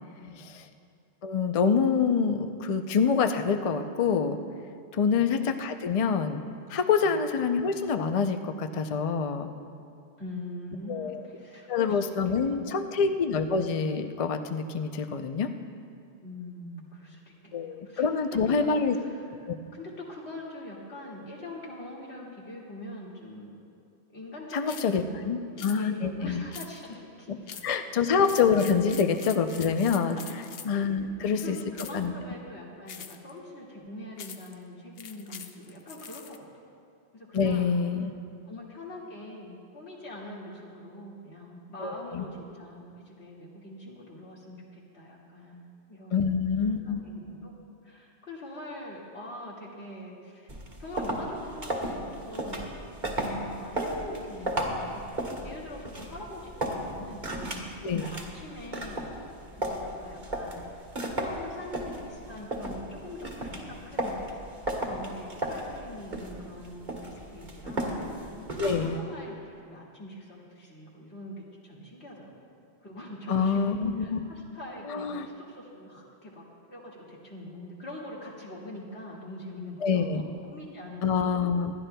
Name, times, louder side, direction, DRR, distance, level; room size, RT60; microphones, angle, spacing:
voice 1, 0.1-0.5 5.1-5.3 7.0-7.2 10.2-12.8 16.2-23.6 24.1-27.8 28.6-29.1 29.6-30.3 30.7-36.4 37.1-37.7 38.5-47.5 47.8-50.5 50.8-51.9 52.2-52.7 53.2-57.3 58.1-59.1 59.6-60.8 61.1-64.2 64.8-67.9 68.8-72.3 72.8-81.4, left 1 dB, 85° left, -5 dB, 2.4 m, -43 dB
voice 2, 1.2-4.4 4.9-6.4 6.7-9.5 10.9-11.2 11.7-15.5 17.5-19.0 19.5-19.6 24.5-26.4 27.6-30.2 30.7-31.6 31.9-32.1 37.3-38.1 41.8-42.2 46.1-47.0 57.8-58.1 68.6-69.0 73.3-74.2 74.9-75.3 79.8-80.2 81.0-81.7, left 6 dB, 45° left, 7 dB, 0.5 m, -26 dB
sound 1, 24.7-25.0 25.6-25.8 26.5-26.9 27.5-27.8 28.2-30.8 31.7-32.1 32.9-33.3 34.2-34.5 35.0-36.4, left 8 dB, 70° left, 0.8 m, -43 dB
sound 2, 50.5-69.0, right 1 dB, 45° right, 1.6 m, -35 dB
26.5 x 11.5 x 2.2 m, 2.4 s
omnidirectional pair, 1.1 m